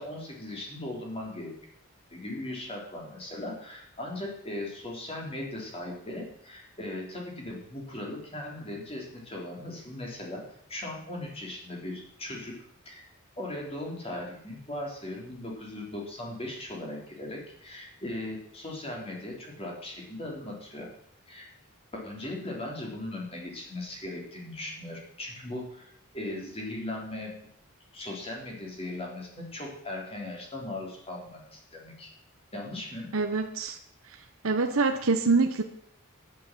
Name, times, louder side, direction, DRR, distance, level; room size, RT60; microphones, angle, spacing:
voice 1, 0.0-1.5 2.1-10.4 10.7-12.6 12.9-13.0 13.4-20.9 21.3-21.5 21.9-27.3 27.9-32.1 32.5-33.1, left 1 dB, 25° left, -1 dB, 3.6 m, -38 dB
voice 2, 33.1-33.8 34.4-35.6, right 4 dB, 80° right, 5 dB, 1.0 m, -25 dB
10.5 x 9.5 x 7.6 m, 0.69 s
head